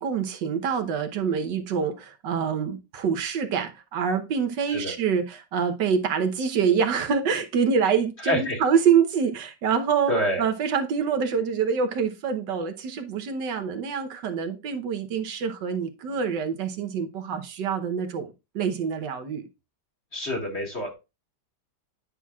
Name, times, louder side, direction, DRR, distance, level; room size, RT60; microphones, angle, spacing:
voice 1, 0.0-10.1 10.4-19.5, right 6 dB, 80° right, 1.6 m, -26 dB
voice 2, 8.2-8.6 10.1-10.5 20.1-20.9, equal, 40° left, 2.1 m, -27 dB
9.8 x 5.8 x 2.3 m
omnidirectional pair, 1.9 m